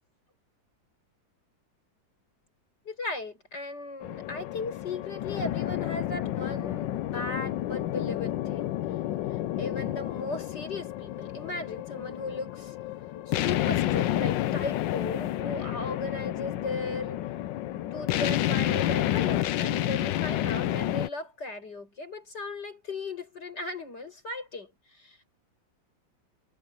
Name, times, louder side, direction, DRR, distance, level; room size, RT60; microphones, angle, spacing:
voice 1, 2.9-8.8 9.6-12.8 13.3-17.2 17.9-25.3, left 3 dB, 60° left, 8.8 m, -36 dB
sound 1, 4.0-21.1, left 13 dB, 75° left, 1.3 m, -30 dB
omnidirectional pair, 2.1 m